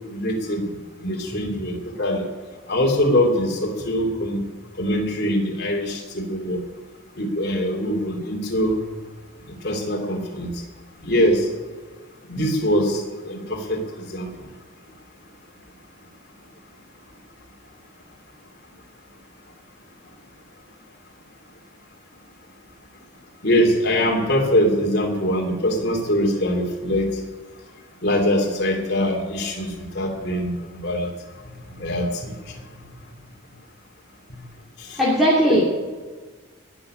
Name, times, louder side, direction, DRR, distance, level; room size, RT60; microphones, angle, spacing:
voice 1, 0.1-2.3 2.7-4.4 4.8-6.6 7.2-8.8 9.6-10.5 11.0-11.5 12.3-13.0 13.3-14.3 23.4-27.1 28.0-31.1 31.7-32.3 34.9-35.0 35.5-35.6, equal, 50° left, 1 dB, 3.1 m, -23 dB
voice 2, 35.0-35.6, equal, ahead, -8 dB, 2.7 m, -17 dB
20.5 x 6.9 x 8.9 m, 1.4 s
head